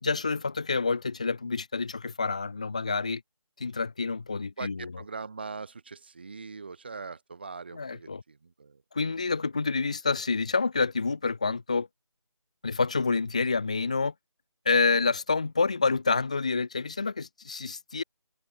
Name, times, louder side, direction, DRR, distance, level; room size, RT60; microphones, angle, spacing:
voice 1, 0.0-3.2 3.6-5.0 7.7-8.2 8.9-11.9 12.6-14.1 14.6-18.0, left 4 dB, 15° left, 1.5 m, -28 dB
voice 2, 4.6-8.8, right 4 dB, 20° right, 5.0 m, -41 dB
figure-of-eight pair, 180°, 16 cm